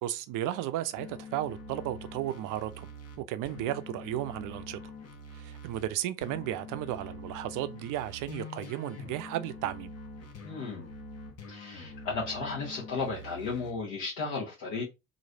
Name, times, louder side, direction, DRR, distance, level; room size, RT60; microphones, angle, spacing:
voice 1, 0.0-2.9 3.2-4.8 5.3-9.9, right 13 dB, 50° right, 0.5 m, -34 dB
sound 1, 1.0-5.9 6.2-13.7, left 2 dB, 40° left, 1.0 m, -45 dB
voice 2, 10.4-10.8 11.5-14.8, left 4 dB, 60° left, 1.1 m, -34 dB
3.0 x 2.5 x 2.7 m
figure-of-eight pair, 50°, 41 cm